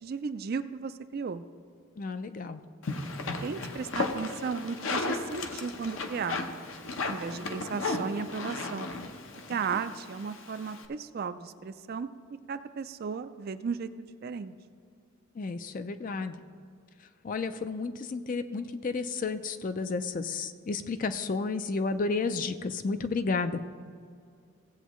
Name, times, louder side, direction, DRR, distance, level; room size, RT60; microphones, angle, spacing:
voice 1, 0.0-1.4 3.4-6.6 7.1-8.9 9.5-12.1 12.5-13.9 14.2-14.5, right 5 dB, 45° right, 12 dB, 0.3 m, -35 dB
voice 2, 2.0-2.6 15.3-16.4 17.2-23.6, left 4 dB, 35° left, 10 dB, 0.4 m, -32 dB
sound 1, 2.8-10.8, left 3 dB, 65° left, 0.8 m, -35 dB
16.5 x 7.9 x 3.1 m, 2.2 s
head